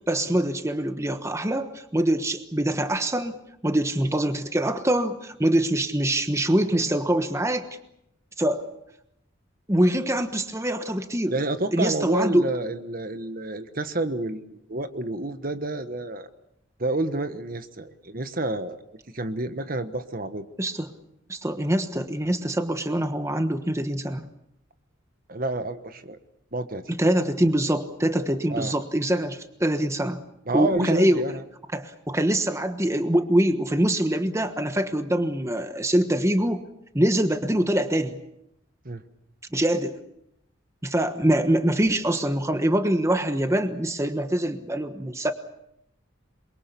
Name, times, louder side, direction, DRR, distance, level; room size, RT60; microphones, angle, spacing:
voice 1, 0.1-7.7 8.4-8.7 9.7-11.3 11.7-12.5 20.6-20.9 21.3-24.3 27.0-30.2 30.5-31.2 31.7-36.6 36.9-38.2 39.5-40.0 40.8-45.3, right 1 dB, 15° right, 8 dB, 1.2 m, -24 dB
voice 2, 11.3-16.3 16.8-18.8 19.1-20.5 25.3-26.2 26.5-26.8 28.5-28.7 30.5-31.4 38.8-39.0, right 2 dB, 45° right, 10 dB, 1.3 m, -29 dB
28.0 x 23.0 x 7.0 m, 0.81 s
head